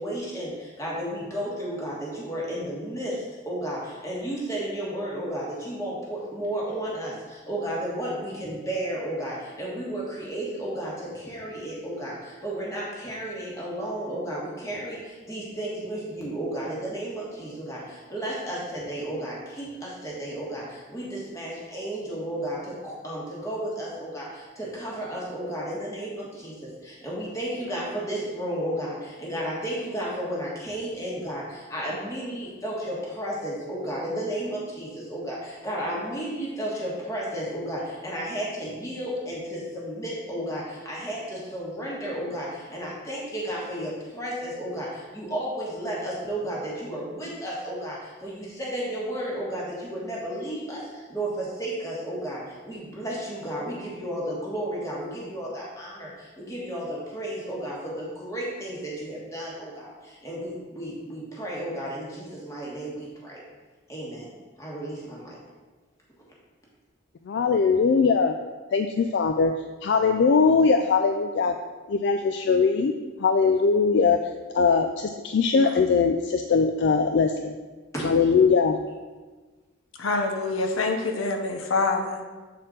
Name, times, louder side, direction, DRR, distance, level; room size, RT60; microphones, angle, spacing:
voice 1, 0.0-63.4 63.9-64.3 64.6-65.4 75.6-75.7 77.9-78.1, right 1 dB, 15° left, -5 dB, 1.5 m, -33 dB
voice 2, 67.3-68.3 68.7-69.5 69.8-71.5 71.9-72.9 73.2-74.2 74.5-77.5 78.0-78.8, left 5 dB, 60° left, 6 dB, 0.3 m, -21 dB
voice 3, 80.0-82.3, left 3 dB, 85° left, 4 dB, 0.8 m, -26 dB
7.6 x 4.3 x 3.8 m, 1.3 s
head